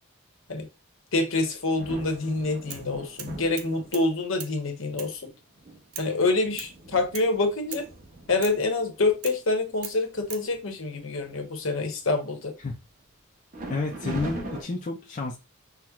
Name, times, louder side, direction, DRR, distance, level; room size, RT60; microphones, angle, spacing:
voice 1, 1.1-5.3 6.0-7.8 8.3-12.5, left 3 dB, 65° left, 0.9 m, -26 dB
sound 1, 1.3-4.3 5.0-5.1 5.6-9.2 9.7-9.8 10.2-10.6 10.9-11.7 13.5-14.6, right 2 dB, 40° right, 0.8 m, -41 dB
sound 2, 2.7-2.9 3.2-4.1 4.4-4.6 5.0-5.2 5.9-6.1 6.6-6.8 7.1-7.3 7.7-7.9 8.4-8.6 9.2-9.4 9.8-10.5, right 8 dB, 85° right, 0.5 m, -40 dB
voice 2, 13.7-15.4, left 3 dB, 35° left, 0.4 m, -30 dB
5.7 x 2.1 x 2.3 m
head